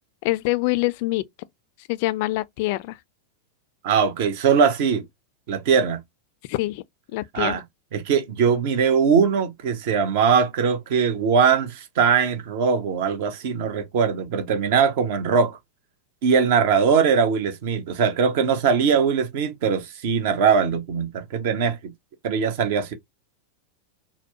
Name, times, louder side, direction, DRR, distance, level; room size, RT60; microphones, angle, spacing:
voice 1, 0.2-1.3 1.9-3.0 6.5-6.8 7.1-7.6, left 19 dB, 45° left, 0.3 m, -25 dB
voice 2, 3.8-5.0 5.5-6.0 7.3-7.6 7.9-15.6 16.2-21.9 22.2-22.9, right 6 dB, 50° right, 0.8 m, -21 dB
4.3 x 2.1 x 2.8 m
figure-of-eight pair, 90°, 0 cm